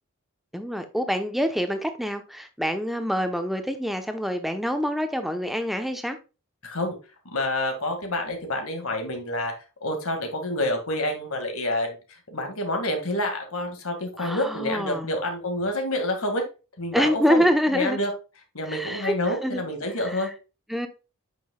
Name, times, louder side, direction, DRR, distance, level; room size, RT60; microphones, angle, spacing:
voice 1, 0.5-6.2 14.2-15.1 16.9-18.0 18.6-19.1 19.4-19.6 20.1-20.2 20.7-20.9, equal, ahead, 0.8 m, -26 dB
voice 2, 6.6-6.9 7.3-9.5 9.8-16.4 16.8-18.1 18.5-20.3, left 1 dB, 80° left, 2.0 m, -28 dB
8.6 x 6.2 x 2.3 m
head